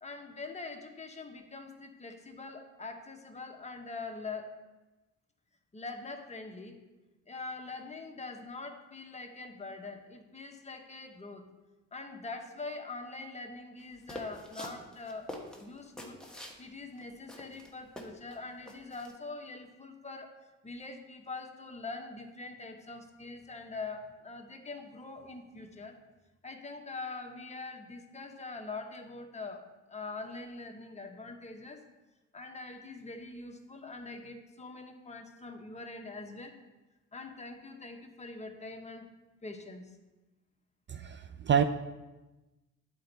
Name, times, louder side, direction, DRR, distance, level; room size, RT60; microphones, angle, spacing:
voice 1, 0.0-4.5 5.7-6.8 7.3-11.4 11.9-15.3 15.6-16.2 16.6-20.3 20.6-26.0 26.4-29.6 29.9-31.8 32.3-36.6 37.1-39.1 39.4-39.9, left 3 dB, 20° left, 3 dB, 1.0 m, -43 dB
sound 1, 14.1-16.6 17.0-17.1 17.3-18.4 18.7-19.1, left 1 dB, ahead, 1.2 m, -45 dB
voice 2, 40.9-41.6, right 8 dB, 40° right, 8 dB, 0.4 m, -27 dB
10.0 x 4.4 x 4.0 m, 1.1 s
cardioid pair, 90°, 30 cm